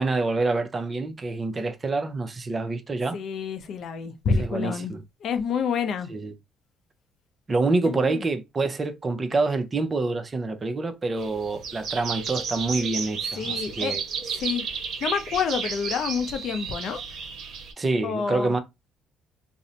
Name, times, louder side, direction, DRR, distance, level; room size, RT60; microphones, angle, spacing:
voice 1, 0.0-3.2 4.4-5.0 6.1-6.3 7.5-14.0 17.8-18.6, right 3 dB, 30° right, 0.6 m, -26 dB
voice 2, 3.1-6.1 7.8-8.3 13.3-14.0 14.3-14.6 15.0-17.0 18.0-18.5, left 6 dB, 65° left, 0.5 m, -28 dB
sound 1, 11.2-17.7, right 6 dB, 65° right, 0.9 m, -33 dB
2.6 x 2.0 x 2.6 m
supercardioid pair, 75°, 0 cm